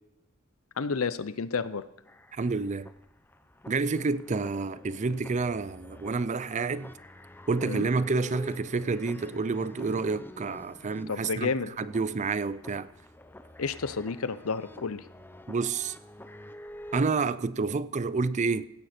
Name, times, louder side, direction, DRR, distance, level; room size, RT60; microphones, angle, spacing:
voice 1, 0.8-1.8 7.6-7.8 11.1-11.7 13.6-15.0, left 5 dB, 80° left, 0.7 m, -30 dB
sound 1, 2.0-17.1, left 1 dB, 10° left, 0.6 m, -48 dB
voice 2, 2.3-2.9 3.7-6.9 7.5-11.5 11.8-12.9 15.5-15.9 16.9-18.7, right 4 dB, 35° right, 0.4 m, -29 dB
16.5 x 11.5 x 4.4 m
head